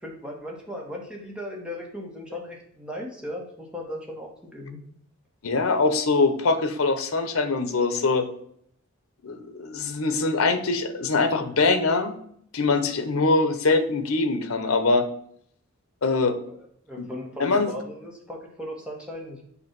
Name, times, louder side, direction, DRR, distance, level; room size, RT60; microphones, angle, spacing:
voice 1, 0.0-4.8 16.5-19.4, left 1 dB, 5° right, -2 dB, 1.3 m, -37 dB
voice 2, 5.4-8.3 9.2-12.1 12.5-15.1 16.0-16.4 17.0-17.1 17.4-17.7, left 3 dB, 85° left, 9 dB, 0.8 m, -23 dB
8.0 x 2.7 x 5.9 m, 0.67 s
head